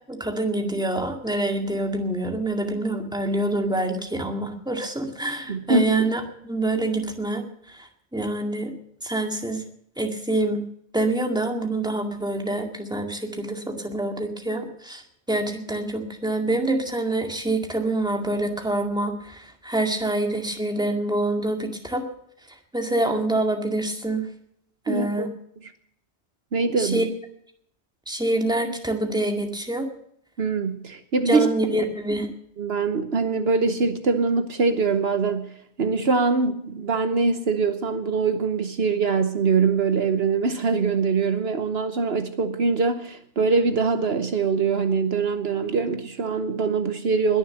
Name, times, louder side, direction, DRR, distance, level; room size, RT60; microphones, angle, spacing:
voice 1, 0.1-7.4 7.8-7.9 8.1-8.7 9.0-9.6 10.0-10.6 10.9-15.0 15.3-22.0 22.7-24.2 24.9-25.3 26.8-27.0 28.1-29.9 31.3-32.3, right 2 dB, 5° right, 2 dB, 2.1 m, -26 dB
voice 2, 5.5-5.9 24.9-25.3 25.6-25.7 26.5-27.1 30.4-31.5 32.6-35.5 35.8-47.4, right 4 dB, 65° right, 8 dB, 1.2 m, -23 dB
21.0 x 7.1 x 7.8 m, 0.69 s
omnidirectional pair, 1.1 m